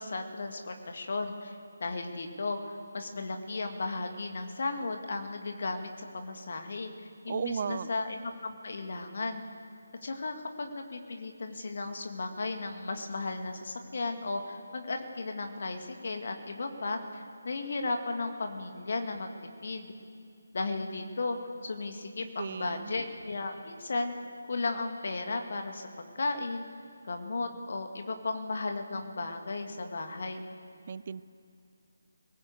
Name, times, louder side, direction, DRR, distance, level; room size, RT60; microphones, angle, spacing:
voice 1, 0.0-6.9 7.2-9.4 10.0-19.3 19.6-19.9 20.5-21.4 21.6-24.1 24.5-25.8 26.1-26.7 27.1-30.4, left 3 dB, 50° left, 5 dB, 2.0 m, -35 dB
voice 2, 7.3-7.9 22.4-22.9 30.9-31.2, right 6 dB, 40° right, 19 dB, 0.5 m, -34 dB
21.0 x 18.0 x 8.1 m, 2.6 s
figure-of-eight pair, 150°, 0 cm